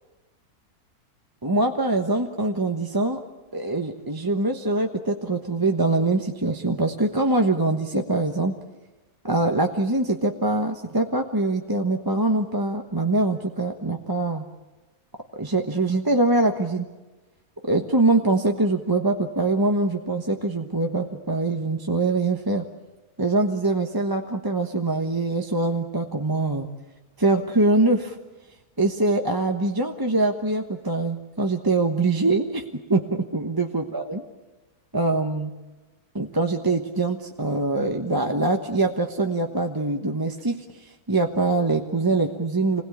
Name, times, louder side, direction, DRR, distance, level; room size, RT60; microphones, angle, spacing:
voice 1, 1.4-3.2 3.5-8.5 9.2-14.5 15.4-16.8 17.6-22.6 23.2-26.7 27.2-28.2 28.8-32.6 32.9-34.2 34.9-35.5 36.1-42.8, right 2 dB, 15° right, 3 dB, 1.1 m, -23 dB
27.5 x 20.5 x 8.6 m, 1.2 s
omnidirectional pair, 1.6 m